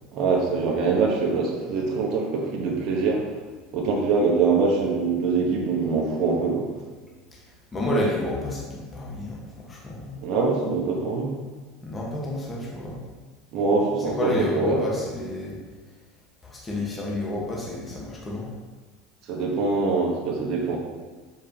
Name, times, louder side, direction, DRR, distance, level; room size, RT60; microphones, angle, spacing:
voice 1, 0.1-3.4 3.7-6.7 10.2-11.4 13.5-14.9 19.2-20.8, right 4 dB, 55° right, -2 dB, 1.2 m, -24 dB
voice 2, 7.7-10.2 11.8-13.0 14.2-15.6 16.4-18.5, left 1 dB, 20° left, -4 dB, 1.5 m, -30 dB
7.1 x 4.9 x 3.0 m, 1.4 s
hypercardioid pair, 95°, 0 cm